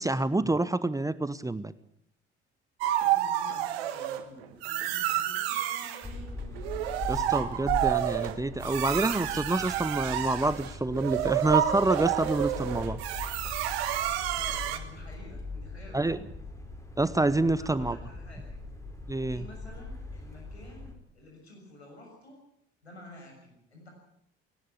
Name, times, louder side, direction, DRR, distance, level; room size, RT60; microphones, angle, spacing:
voice 1, 0.0-1.7 7.1-13.0 15.9-16.2 17.0-18.0 19.1-19.4, right 2 dB, 10° right, 15 dB, 1.0 m, -27 dB
sound 1, 2.8-4.2 4.6-6.1 6.6-14.8, right 12 dB, 70° right, 1.6 m, -29 dB
voice 2, 3.0-6.5 14.3-16.2 17.6-18.5 19.3-22.4 22.8-23.9, left 1 dB, 90° left, 1 dB, 6.6 m, -50 dB
sound 2, 6.0-20.9, left 2 dB, 10° left, 4.7 m, -41 dB
18.0 x 18.0 x 8.4 m, 0.71 s
figure-of-eight pair, 55°, 32 cm